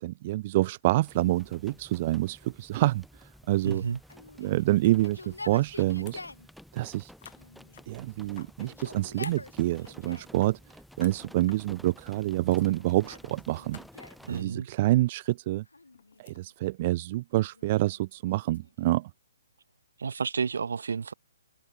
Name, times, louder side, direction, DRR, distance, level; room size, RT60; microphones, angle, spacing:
voice 1, 0.0-3.8 4.4-6.2 6.7-7.1 7.9-10.6 11.0-13.8 14.3-15.6 16.2-19.1, right 17 dB, 35° right, 0.3 m, -27 dB
sound 1, 1.0-14.4, equal, ahead, 4.6 m, -52 dB
voice 2, 3.6-4.0 14.3-14.7 20.0-21.1, right 5 dB, 60° right, 2.3 m, -31 dB
Yell, 4.1-6.5 7.4-8.1 8.5-10.4 11.1-11.8 12.5-14.3 15.6-16.5 17.3-19.1, left 2 dB, 80° left, 4.9 m, -47 dB
sound 2, 4.7-5.0 5.2-5.5 5.8-6.4 6.7-6.8 7.2-8.9 9.2-10.0 10.2-11.2 11.5-11.6 12.2-12.3 12.5-12.7 13.0-13.2 13.4-13.5 13.7-13.9 14.9-15.4 15.7-16.4 16.8-17.0 18.0-18.9, left 9 dB, 50° left, 6.4 m, -53 dB
figure-of-eight pair, 130°, 0 cm